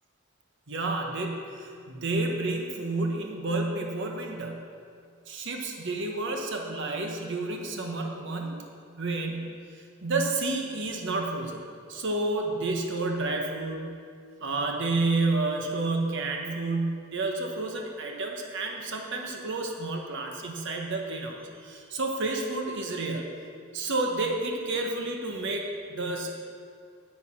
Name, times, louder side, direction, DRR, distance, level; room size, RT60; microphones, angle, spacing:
voice 1, 0.7-4.6 5.3-11.6 11.9-13.9 14.4-23.3 23.7-26.3, right 2 dB, 60° right, 2 dB, 1.1 m, -30 dB
8.9 x 8.2 x 5.7 m, 2.2 s
head